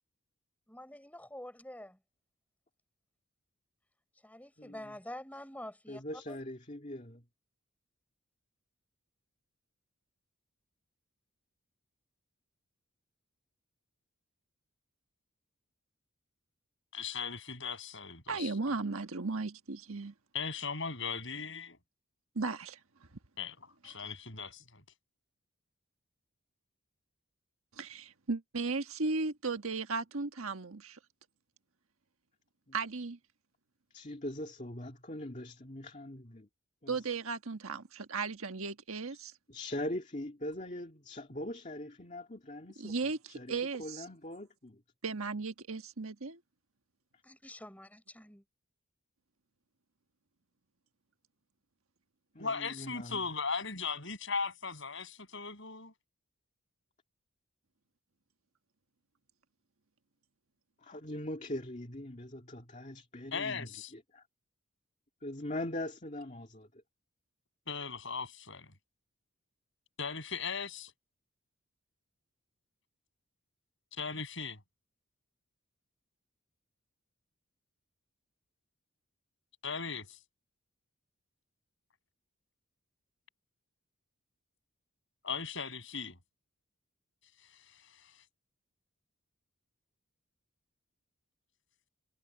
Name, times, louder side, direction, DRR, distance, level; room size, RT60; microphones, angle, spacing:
voice 1, 0.7-2.0 4.2-6.0 6.3-6.4 47.2-48.4, left 1 dB, 5° left, 5.1 m, -47 dB
voice 2, 5.9-7.2 32.7-32.8 33.9-36.5 36.8-37.0 39.5-42.9 43.3-43.5 43.8-44.8 52.3-53.2 60.8-63.7 64.1-64.2 65.2-66.7, left 1 dB, 35° left, 2.3 m, -41 dB
voice 3, 16.9-18.5 20.3-21.8 23.4-23.6 23.8-24.8 52.4-55.9 63.3-63.9 67.7-68.7 70.0-70.9 73.9-74.6 79.6-80.2 85.2-86.2 87.7-88.1, left 5 dB, 55° left, 6.8 m, -38 dB
voice 4, 18.3-20.1 22.3-22.8 27.8-31.0 32.7-33.2 36.9-39.3 42.8-44.0 45.0-46.4, right 4 dB, 70° right, 1.5 m, -36 dB
head